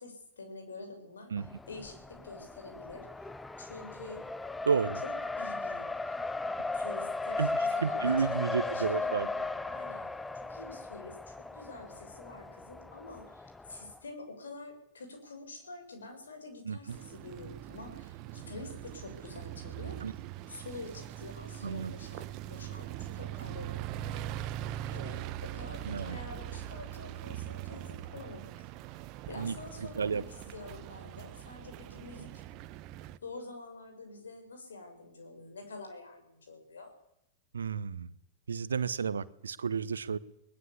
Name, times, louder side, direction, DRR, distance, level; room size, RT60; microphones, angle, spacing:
voice 1, 0.0-3.1 3.6-4.2 5.0-5.9 6.7-10.1 10.3-20.2 20.5-24.4 24.9-28.7 29.0-32.3 33.2-36.9, left 3 dB, 70° left, 6 dB, 6.8 m, -47 dB
Race car auto racing, 1.4-14.0, left 3 dB, 10° left, 0.9 m, -37 dB
voice 2, 4.7-5.0 7.4-7.5 7.8-9.3 16.7-17.0 20.0-20.1 21.6-21.9 25.9-26.2 29.4-29.5 30.0-30.2 37.5-38.1 38.5-40.2, right 6 dB, 70° right, 17 dB, 1.0 m, -31 dB
sound 1, 16.9-33.2, right 13 dB, 40° right, 1.1 m, -42 dB
20.5 x 20.0 x 8.5 m, 0.77 s
figure-of-eight pair, 90°, 0 cm